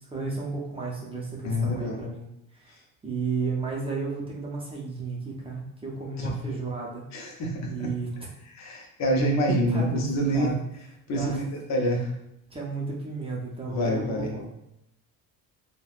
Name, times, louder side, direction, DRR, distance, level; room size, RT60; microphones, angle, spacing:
voice 1, 0.1-7.0 7.7-8.1 9.5-10.6 11.1-11.4 12.5-14.4, right 4 dB, 15° right, -4 dB, 0.5 m, -33 dB
voice 2, 1.4-2.0 6.2-6.6 7.1-7.9 8.5-10.5 11.1-12.1 13.7-14.3, equal, 50° left, 1 dB, 0.6 m, -27 dB
3.3 x 2.1 x 2.4 m, 0.81 s
cardioid pair, 125°, 35 cm